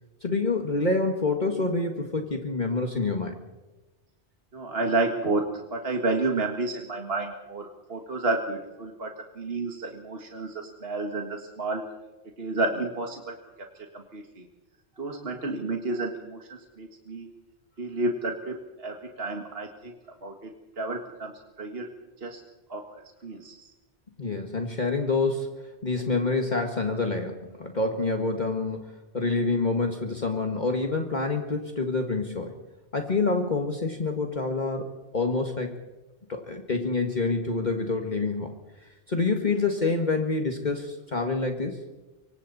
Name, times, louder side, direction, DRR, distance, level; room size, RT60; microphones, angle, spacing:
voice 1, 0.2-3.4 24.2-32.5 32.9-34.9 35.1-35.8 36.3-38.6 39.1-41.8, left 3 dB, 40° left, 3 dB, 1.8 m, -27 dB
voice 2, 4.5-11.9 12.4-13.4 13.9-14.5 15.0-17.3 17.8-20.0 20.2-21.3 21.6-21.9 22.2-22.4 22.7-23.7, right 2 dB, 60° right, 2 dB, 2.0 m, -31 dB
25.5 x 24.0 x 4.2 m, 1.1 s
omnidirectional pair, 1.2 m